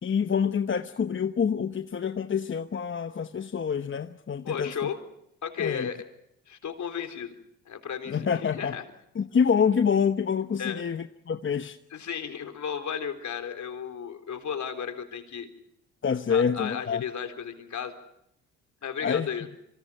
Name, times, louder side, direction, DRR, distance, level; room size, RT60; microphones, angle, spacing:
voice 1, 0.0-4.7 5.6-5.9 8.1-8.8 9.1-11.8 16.0-17.0 19.0-19.3, left 6 dB, 35° left, 1.1 m, -26 dB
voice 2, 4.4-5.0 5.4-6.0 6.5-7.3 7.7-8.8 10.6-10.8 11.9-15.5 16.3-17.9 18.8-19.5, left 7 dB, 60° left, 3.7 m, -34 dB
26.5 x 25.0 x 5.6 m
supercardioid pair, 60°, 34 cm